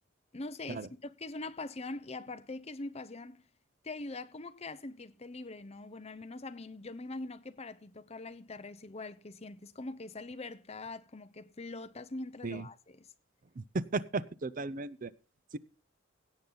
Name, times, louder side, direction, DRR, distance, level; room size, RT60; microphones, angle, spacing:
voice 1, 0.3-3.4 3.8-13.1, left 2 dB, 30° left, 0.8 m, -43 dB
voice 2, 13.6-15.1, right 3 dB, 45° right, 0.6 m, -35 dB
17.0 x 7.3 x 3.9 m
head